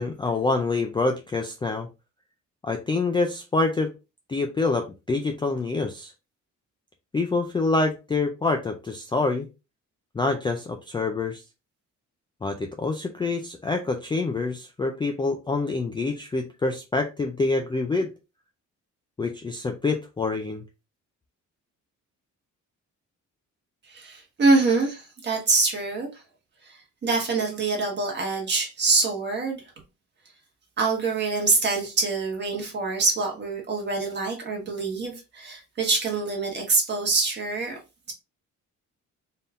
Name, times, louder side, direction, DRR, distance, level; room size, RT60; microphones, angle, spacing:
voice 1, 0.0-1.9 2.6-3.9 4.3-6.1 7.1-9.5 10.2-11.4 12.4-18.1 19.2-20.6, left 3 dB, 15° left, 0.3 m, -26 dB
voice 2, 23.9-26.1 26.6-29.6 30.8-37.8, right 3 dB, 35° right, 1.5 m, -25 dB
4.3 x 3.5 x 2.5 m
cardioid pair, 175°, 31 cm